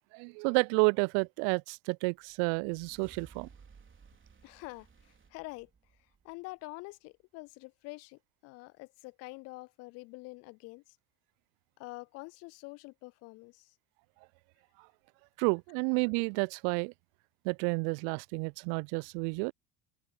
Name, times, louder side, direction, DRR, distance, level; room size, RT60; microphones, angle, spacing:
voice 1, 0.1-3.5 15.4-16.9 17.4-19.5, right 40 dB or more, 50° right, 0.5 m, -30 dB
sound 1, 2.2-6.8, right 5 dB, 25° right, 4.2 m, -58 dB
voice 2, 4.4-5.7 6.0-11.0 11.8-13.8, left 25 dB, 35° left, 0.4 m, -46 dB
figure-of-eight pair, 65°, 49 cm